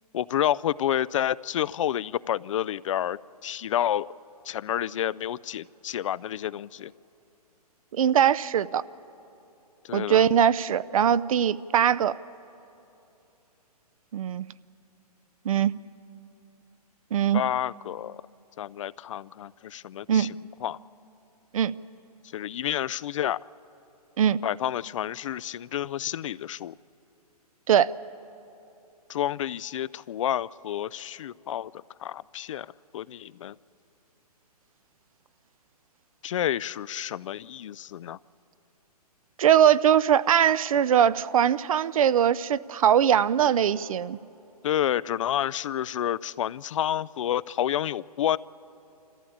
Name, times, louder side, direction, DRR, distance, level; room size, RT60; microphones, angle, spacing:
voice 1, 0.1-4.1 4.5-6.9 9.8-10.3 17.3-18.2 18.6-20.3 20.6-20.8 22.3-23.4 24.4-26.7 29.1-31.7 32.0-32.7 32.9-33.5 36.2-38.2 44.6-48.4, left 11 dB, 55° left, 20 dB, 0.4 m, -29 dB
voice 2, 7.9-8.8 9.9-12.2 14.1-14.5 15.4-15.7 17.1-17.4 20.1-20.3 21.5-21.7 24.2-24.4 27.7-27.9 39.4-44.2, right 9 dB, 60° right, 18 dB, 0.6 m, -21 dB
26.0 x 15.0 x 8.6 m, 2.9 s
hypercardioid pair, 130°, 20 cm